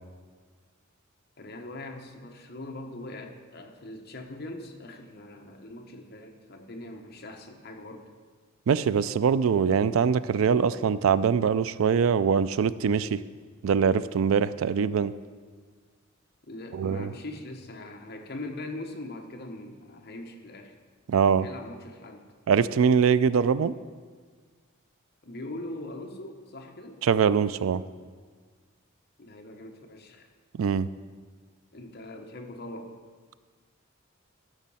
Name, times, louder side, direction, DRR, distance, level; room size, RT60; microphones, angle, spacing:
voice 1, 1.4-8.1 16.5-20.7 21.1-22.3 25.2-27.0 29.2-30.3 31.7-33.0, left 1 dB, 50° left, 3 dB, 1.0 m, -41 dB
voice 2, 8.7-13.2 13.6-15.2 16.7-17.1 21.1-21.5 22.5-23.7 27.0-27.8 30.6-30.9, right 6 dB, 85° right, 16 dB, 0.4 m, -23 dB
11.5 x 6.2 x 5.5 m, 1.5 s
head